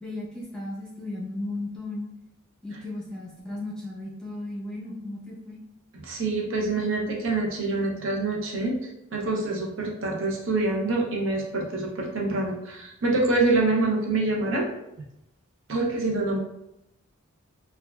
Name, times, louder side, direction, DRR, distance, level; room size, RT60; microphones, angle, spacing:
voice 1, 0.0-2.1 2.6-5.6, left 2 dB, 5° left, -6 dB, 0.6 m, -35 dB
voice 2, 6.0-8.7 9.1-14.7 15.7-16.4, right 2 dB, 65° right, -1 dB, 0.6 m, -26 dB
3.3 x 2.3 x 2.2 m, 0.86 s
head